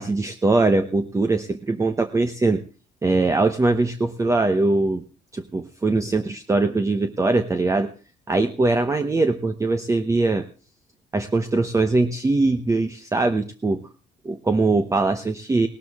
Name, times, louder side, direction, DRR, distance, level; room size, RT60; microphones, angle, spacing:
voice 1, 0.0-2.6 3.0-5.0 5.3-7.9 8.3-10.4 11.1-13.8 14.2-15.7, right 3 dB, 20° right, 8 dB, 0.9 m, -21 dB
17.5 x 13.0 x 3.6 m, 0.37 s
cardioid pair, 110°, 17 cm